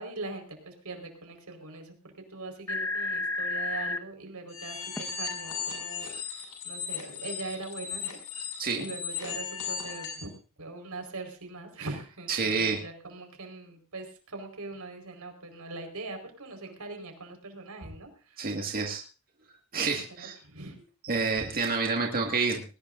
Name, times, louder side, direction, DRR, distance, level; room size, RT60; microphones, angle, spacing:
voice 1, 0.0-8.2 8.8-10.3 10.6-18.6 20.2-20.8, right 3 dB, 85° right, 4 dB, 4.7 m, -42 dB
sound 1, 2.3-2.4 2.7-4.0 5.0-5.1, left 2 dB, 15° left, 1.2 m, -31 dB
sound 2, 4.5-10.3, left 6 dB, 80° left, 6.4 m, -37 dB
voice 2, 12.3-12.8 18.4-19.0 19.7-20.4 21.1-22.6, right 4 dB, 40° right, 1 dB, 2.0 m, -28 dB
20.5 x 18.5 x 2.6 m, 0.35 s
head